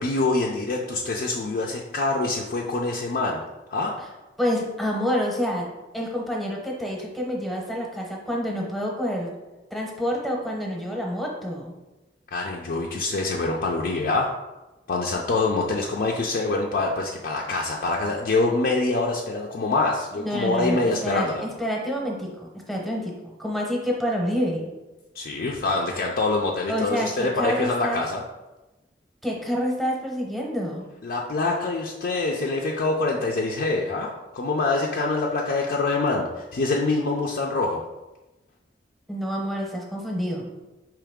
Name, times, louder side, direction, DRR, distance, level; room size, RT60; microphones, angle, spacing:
voice 1, 0.0-3.4 3.7-3.9 12.3-14.3 14.9-21.4 25.2-28.2 31.0-37.8, left 3 dB, 55° left, -1 dB, 0.4 m, -25 dB
voice 2, 4.4-5.7 5.9-9.3 9.7-11.7 20.1-24.7 26.7-28.0 29.2-30.9 39.1-40.5, equal, ahead, -2 dB, 0.8 m, -28 dB
4.7 x 3.1 x 3.5 m, 1.1 s
head